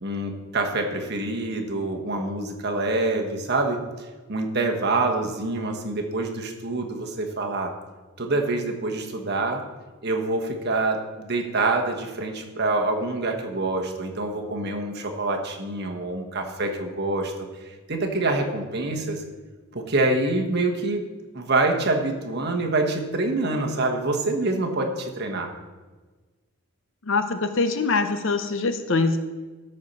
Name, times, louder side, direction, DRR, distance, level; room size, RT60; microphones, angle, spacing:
voice 1, 0.0-7.7 8.2-9.6 10.0-17.3 17.6-19.2 19.7-21.1 21.3-25.5, right 2 dB, 45° right, 2 dB, 1.2 m, -26 dB
voice 2, 27.0-29.2, left 3 dB, 55° left, 9 dB, 0.7 m, -23 dB
13.5 x 4.4 x 5.5 m, 1.3 s
head